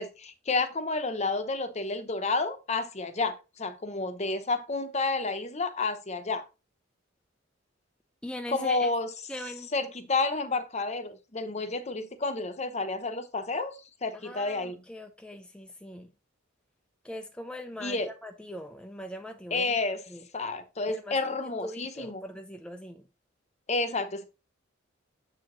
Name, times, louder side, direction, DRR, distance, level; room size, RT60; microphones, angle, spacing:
voice 1, 0.0-6.4 8.5-9.1 9.7-14.8 17.8-18.1 19.5-20.0 20.3-22.2 23.7-24.3, left 3 dB, 35° left, 0.8 m, -30 dB
voice 2, 8.2-8.9 9.3-9.7 14.1-16.1 17.0-19.8 20.1-20.3 20.9-23.1, left 1 dB, 5° left, 0.5 m, -41 dB
7.6 x 4.8 x 3.8 m
head